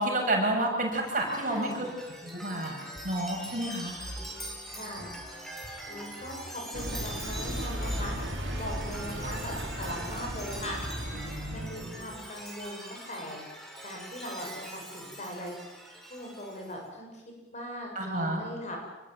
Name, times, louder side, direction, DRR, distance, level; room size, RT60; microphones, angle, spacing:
voice 1, 0.0-1.9 2.2-2.7 3.0-3.9 18.0-18.4, right 1 dB, 45° right, 0 dB, 7.8 m, -29 dB
Chime, 0.9-16.8, right 1 dB, ahead, 5.5 m, -43 dB
voice 2, 1.5-1.9 4.7-5.1 5.9-8.1 8.6-10.8 11.5-13.4 13.8-15.6 16.1-17.2 17.5-18.8, left 1 dB, 40° left, 1 dB, 7.4 m, -40 dB
sound 1, 6.7-12.2, equal, 75° right, 3.8 m, -36 dB
27.0 x 22.0 x 9.2 m, 1.1 s
head